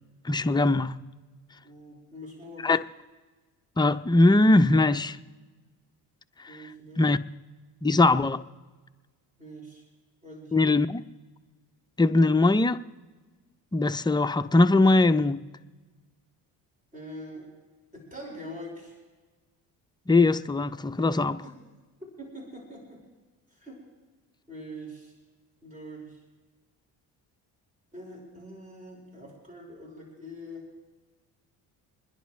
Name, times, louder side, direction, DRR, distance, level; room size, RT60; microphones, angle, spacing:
voice 1, 0.2-1.0 2.6-2.8 3.8-5.2 6.4-6.6 7.0-7.2 7.8-8.4 10.5-11.0 12.0-12.8 13.7-15.4 20.1-21.4, left 2 dB, 10° left, 0.5 m, -21 dB
voice 2, 1.6-2.7 6.5-7.1 9.4-9.8 10.2-10.6 16.9-17.5 17.9-19.0 21.4-21.6 22.2-23.0 23.5-23.9 24.5-25.1 25.6-26.2 27.9-30.7, equal, 20° right, 4.9 m, -43 dB
26.0 x 10.5 x 3.2 m
cardioid pair, 85°, 43 cm